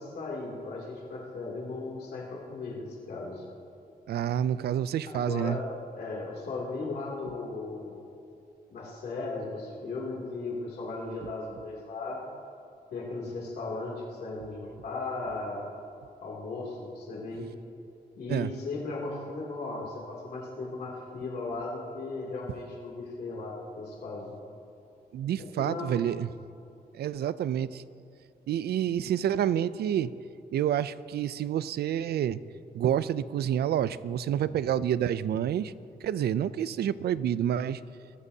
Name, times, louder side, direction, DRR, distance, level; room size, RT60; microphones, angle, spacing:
voice 1, 0.0-3.4 5.1-5.6 6.0-8.0 8.7-12.2 12.9-15.7 16.2-17.5 18.2-24.4 25.4-25.9, left 3 dB, 80° left, -5 dB, 2.8 m, -36 dB
voice 2, 4.1-5.6 18.3-18.5 25.1-26.3 26.9-27.8 28.5-30.1 30.5-32.4 32.7-35.7 36.0-37.8, right 10 dB, 80° right, 16 dB, 0.4 m, -28 dB
22.0 x 14.5 x 2.8 m, 2.5 s
cardioid pair, 105°, 16 cm